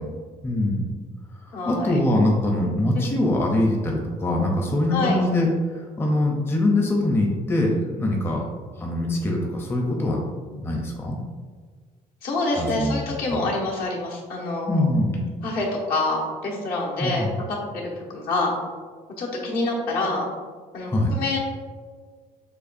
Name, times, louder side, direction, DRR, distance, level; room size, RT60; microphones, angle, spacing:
voice 1, 0.4-0.9 1.4-8.5 8.8-11.2 12.6-13.0 13.3-13.4 14.7-15.3 17.0-17.3 20.9-21.1, left 1 dB, 15° left, 0 dB, 0.6 m, -23 dB
voice 2, 1.5-2.0 2.9-3.1 4.9-5.2 12.2-14.8 15.4-17.3 17.7-18.5 19.2-20.3 20.7-21.4, left 2 dB, 70° left, -3 dB, 1.2 m, -26 dB
6.8 x 2.4 x 2.5 m, 1.5 s
cardioid pair, 130°, 16 cm